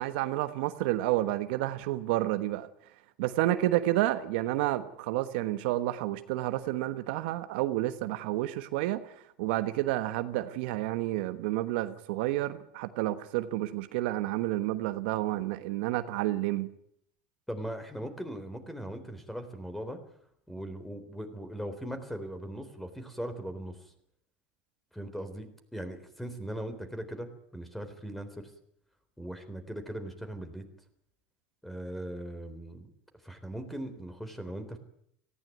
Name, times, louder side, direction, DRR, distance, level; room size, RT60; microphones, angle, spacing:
voice 1, 0.0-2.7 3.2-16.7, right 15 dB, 75° right, 10 dB, 1.2 m, -30 dB
voice 2, 17.5-20.0 20.5-23.9 24.9-28.5 29.2-30.7 31.6-32.9 33.2-34.8, right 1 dB, 5° left, 9 dB, 3.8 m, -39 dB
18.5 x 16.0 x 9.3 m, 0.70 s
supercardioid pair, 105°, 6 cm